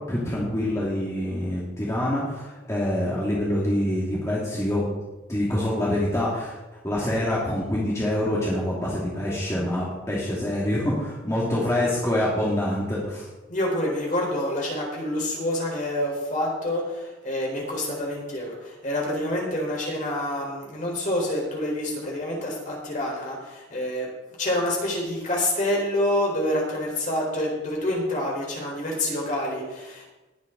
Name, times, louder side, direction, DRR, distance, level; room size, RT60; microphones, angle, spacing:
voice 1, 0.1-4.8 5.3-6.6 6.8-13.3, left 1 dB, 15° left, -6 dB, 2.5 m, -26 dB
voice 2, 13.5-24.1 24.4-30.0, left 1 dB, 40° left, -2 dB, 4.3 m, -27 dB
19.5 x 8.8 x 3.9 m, 1.1 s
head